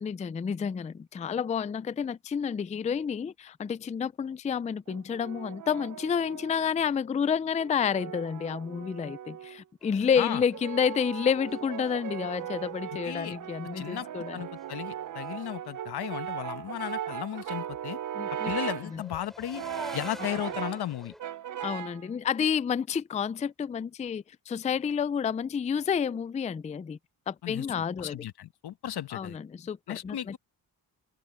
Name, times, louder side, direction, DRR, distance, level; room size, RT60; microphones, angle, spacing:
voice 1, 0.0-14.4 18.1-18.5 18.8-19.0 20.2-20.3 21.6-27.0 27.3-28.2 29.1-30.4, left 7 dB, 20° left, 0.3 m, -30 dB
Brass instrument, 4.9-6.8 7.6-9.6 10.3-18.9 19.5-20.9 21.2-22.0, right 10 dB, 55° right, 0.6 m, -38 dB
sound 1, 9.8-13.0 13.3-15.3 15.5-15.8 16.1-16.4 18.0-21.2, equal, ahead, 5.3 m, -48 dB
voice 2, 13.0-13.3 13.8-14.1 14.3-18.0 18.5-19.6 19.9-21.1 27.4-27.7 28.0-29.4 29.9-30.4, left 11 dB, 90° left, 1.1 m, -35 dB
wide cardioid pair, 110°, 38 cm